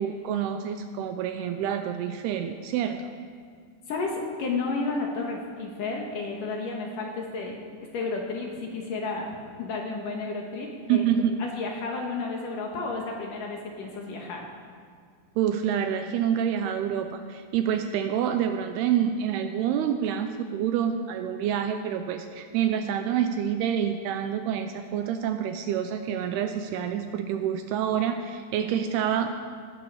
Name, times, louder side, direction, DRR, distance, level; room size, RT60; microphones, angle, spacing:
voice 1, 0.0-3.0 10.9-11.3 15.4-29.3, right 9 dB, 80° right, 7 dB, 2.4 m, -27 dB
voice 2, 3.9-7.6 7.9-9.3 9.6-11.0 11.4-14.5, left 3 dB, 60° left, 0 dB, 2.5 m, -32 dB
19.0 x 12.0 x 4.9 m, 2.1 s
omnidirectional pair, 5.2 m